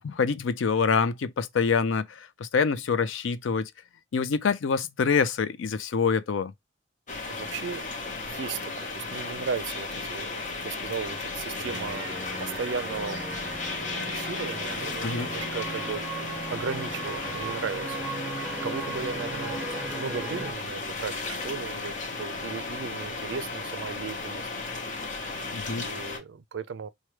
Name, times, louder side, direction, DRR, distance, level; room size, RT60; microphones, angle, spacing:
voice 1, 0.0-3.7 4.1-6.5 15.0-15.3 25.5-25.8, left 5 dB, 80° left, 0.4 m, -26 dB
sound 1, 7.1-26.2, left 3 dB, 40° left, 0.7 m, -35 dB
voice 2, 7.3-13.7 14.1-16.0 16.5-18.2 18.6-19.6 19.9-24.5 25.6-26.9, right 5 dB, 70° right, 0.4 m, -36 dB
sound 2, 11.6-20.5, right 2 dB, 5° right, 0.7 m, -37 dB
4.5 x 2.2 x 3.1 m
head